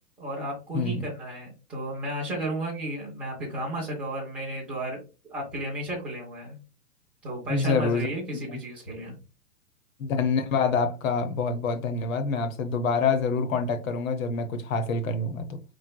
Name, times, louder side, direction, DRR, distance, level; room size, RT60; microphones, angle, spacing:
voice 1, 0.2-5.0 5.2-6.6 7.2-9.1, right 1 dB, 5° right, 0.4 m, -33 dB
voice 2, 0.7-1.1 7.5-8.1 8.3-8.6 10.0-15.4, left 4 dB, 60° left, 1.0 m, -26 dB
5.0 x 3.2 x 2.2 m
hypercardioid pair, 135°, 46 cm